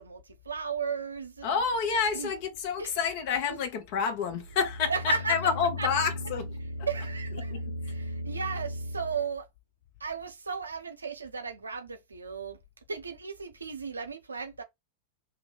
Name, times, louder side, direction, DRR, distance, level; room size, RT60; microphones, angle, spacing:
voice 1, 0.0-1.5 2.1-2.3 2.8-2.9 3.5-3.6 4.9-5.4 5.8-5.9 6.9-9.5 10.0-12.6 12.9-14.6, right 5 dB, 75° right, 0.5 m, -35 dB
voice 2, 1.4-6.5 7.5-7.6, left 6 dB, 45° left, 0.7 m, -29 dB
sound 1, 4.3-9.3, left 1 dB, 90° left, 0.4 m, -37 dB
2.3 x 2.1 x 3.4 m
figure-of-eight pair, 90°, 0 cm